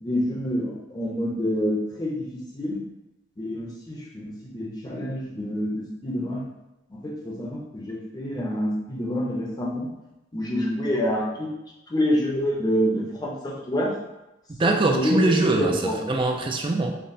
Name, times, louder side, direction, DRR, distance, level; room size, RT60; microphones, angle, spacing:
voice 1, 0.0-2.3 2.5-2.8 3.4-6.5 6.9-9.9 10.3-11.5 11.9-13.9 14.6-15.2 15.6-16.0, equal, 20° left, -3 dB, 0.6 m, -27 dB
voice 2, 14.6-17.0, right 2 dB, 25° right, 3 dB, 0.4 m, -23 dB
5.8 x 2.1 x 2.6 m, 0.97 s
head